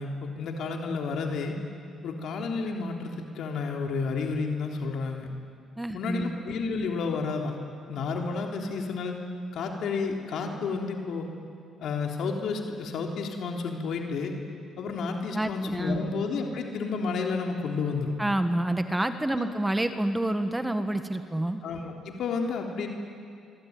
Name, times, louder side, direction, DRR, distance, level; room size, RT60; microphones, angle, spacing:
voice 1, 0.0-1.6 2.0-5.3 5.9-7.6 7.9-9.2 9.5-11.3 11.8-14.3 14.8-18.1 19.4-19.5 21.6-22.9, left 4 dB, 70° left, 2 dB, 3.4 m, -31 dB
voice 2, 5.8-6.4 15.3-16.0 18.2-21.6, right 1 dB, 10° right, 8 dB, 1.6 m, -28 dB
26.5 x 23.5 x 9.6 m, 2.5 s
cardioid pair, 90°, 0 cm